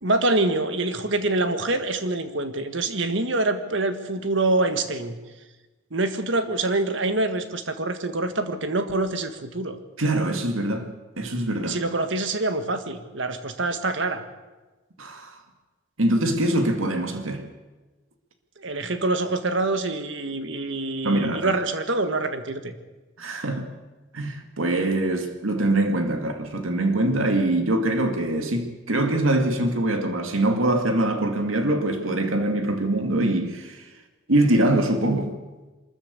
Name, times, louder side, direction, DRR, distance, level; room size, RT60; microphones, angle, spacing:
voice 1, 0.0-5.2 5.9-9.8 11.7-14.2 18.6-22.8, right 2 dB, 70° right, 1.7 m, -25 dB
voice 2, 10.0-10.9 11.2-11.8 15.0-15.4 16.0-17.4 21.0-21.6 23.2-23.7 24.1-33.8 34.3-35.3, right 1 dB, 90° right, 2.3 m, -23 dB
23.5 x 14.0 x 8.4 m
head